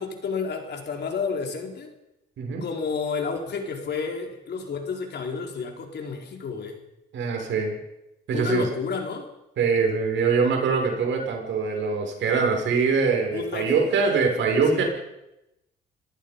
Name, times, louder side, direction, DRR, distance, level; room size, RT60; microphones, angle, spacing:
voice 1, 0.0-1.9 2.6-6.8 8.3-9.3 13.3-13.7 14.7-14.8, left 5 dB, 60° left, 3 dB, 4.3 m, -30 dB
voice 2, 7.1-7.8 8.3-8.7 9.6-14.8, right 5 dB, 70° right, 2 dB, 6.3 m, -23 dB
26.5 x 18.0 x 5.5 m, 0.90 s
cardioid pair, 90°, 20 cm